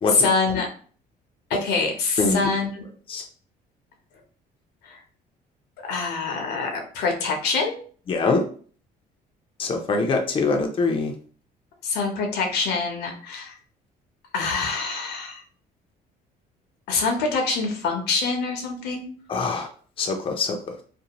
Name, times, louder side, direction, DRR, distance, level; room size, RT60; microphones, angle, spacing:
voice 1, 0.1-0.7 1.5-2.8 4.8-5.0 5.9-7.8 11.8-13.6 14.3-15.4 16.9-19.1, left 4 dB, 85° left, 3 dB, 0.8 m, -25 dB
voice 2, 8.1-8.4 9.6-11.1 19.3-19.7 20.0-20.8, left 3 dB, 30° left, 3 dB, 0.5 m, -23 dB
2.6 x 2.1 x 2.9 m, 0.44 s
cardioid pair, 110°, 17 cm